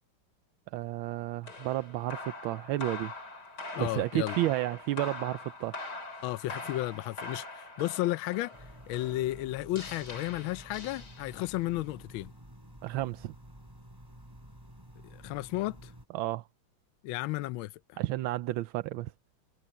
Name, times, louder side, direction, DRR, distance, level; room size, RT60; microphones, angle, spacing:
voice 1, 0.7-3.1 3.8-5.7 12.8-13.3 16.1-16.4 18.0-19.1, right 16 dB, 80° right, 1.4 m, -32 dB
sound 1, 1.4-11.6, left 2 dB, 50° left, 4.3 m, -43 dB
voice 2, 3.7-4.4 6.2-8.5 8.9-12.3 15.0-15.9 17.0-18.0, left 17 dB, 80° left, 1.3 m, -33 dB
sound 2, 8.5-16.0, right 1 dB, 10° right, 5.1 m, -51 dB
omnidirectional pair, 2.3 m